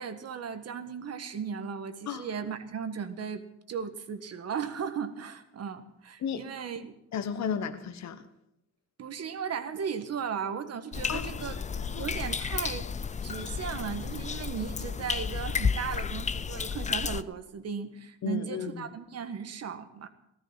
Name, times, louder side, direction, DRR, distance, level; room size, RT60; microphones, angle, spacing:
voice 1, 0.0-6.9 9.0-11.6 11.9-12.9 13.2-20.1, right 7 dB, 55° right, 10 dB, 1.6 m, -36 dB
voice 2, 7.1-8.2 11.1-11.4 11.7-12.1 18.2-18.8, left 7 dB, 65° left, 10 dB, 1.4 m, -34 dB
sound 1, 10.9-17.2, left 6 dB, 25° left, 0.5 m, -32 dB
16.0 x 13.5 x 5.7 m, 0.81 s
cardioid pair, 90°, 30 cm